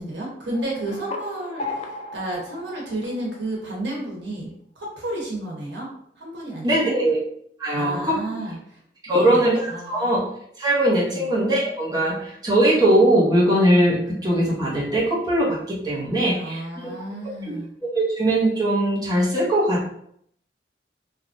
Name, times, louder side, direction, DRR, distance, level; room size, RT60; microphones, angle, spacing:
voice 1, 0.0-5.9 6.2-6.9 7.7-8.8 9.1-10.1 11.1-11.3 16.3-17.7, right 1 dB, 85° right, -3 dB, 0.9 m, -32 dB
sound 1, 0.5-3.8, left 3 dB, 35° left, 0.3 m, -36 dB
voice 2, 6.6-7.2 7.6-8.2 9.1-9.6 9.9-10.2 10.6-16.9 17.9-19.9, right 1 dB, 20° right, -7 dB, 0.8 m, -20 dB
3.0 x 2.3 x 2.5 m, 0.69 s
head